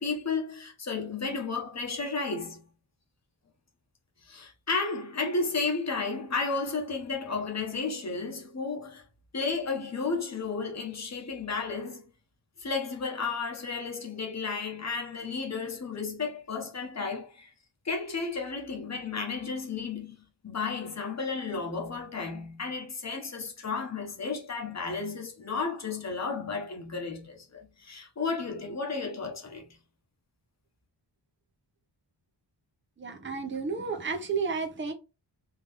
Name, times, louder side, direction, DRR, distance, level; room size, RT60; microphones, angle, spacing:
voice 1, 0.0-2.7 4.2-9.0 9.3-12.0 12.6-17.5 17.8-29.8, left 4 dB, 35° left, 1.2 m, -33 dB
voice 2, 33.0-34.9, right 5 dB, 25° right, 0.9 m, -32 dB
3.8 x 3.3 x 3.4 m
wide cardioid pair, 135°, 44 cm